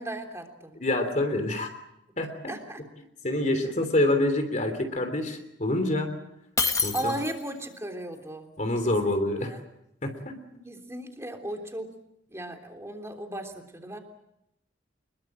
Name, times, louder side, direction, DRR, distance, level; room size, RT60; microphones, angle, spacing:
voice 1, 0.0-0.8 2.5-2.8 6.9-8.5 8.8-9.6 10.6-11.9 12.3-14.0, right 1 dB, 15° right, 4 dB, 3.4 m, -36 dB
voice 2, 0.8-1.7 2.2-2.5 3.2-6.1 6.8-7.1 8.6-9.5 10.0-10.4, left 1 dB, 40° left, 6 dB, 3.2 m, -26 dB
Shatter, 6.6-7.6, left 4 dB, 15° left, 1.7 m, -27 dB
26.0 x 22.0 x 7.5 m, 0.84 s
head